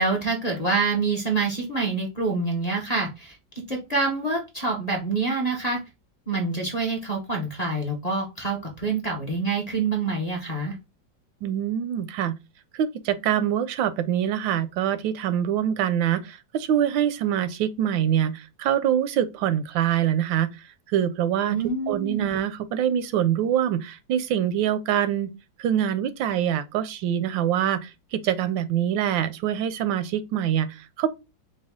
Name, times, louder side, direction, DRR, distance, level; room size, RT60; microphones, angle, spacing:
voice 1, 0.0-3.4 3.7-5.8 6.3-10.8 21.5-22.3, right 3 dB, 35° left, 0.7 m, -26 dB
voice 2, 11.4-12.4 12.7-20.5 20.9-21.6 21.9-25.3 25.6-31.2, right 10 dB, 85° right, 1.3 m, -24 dB
4.9 x 2.3 x 3.5 m
omnidirectional pair, 2.0 m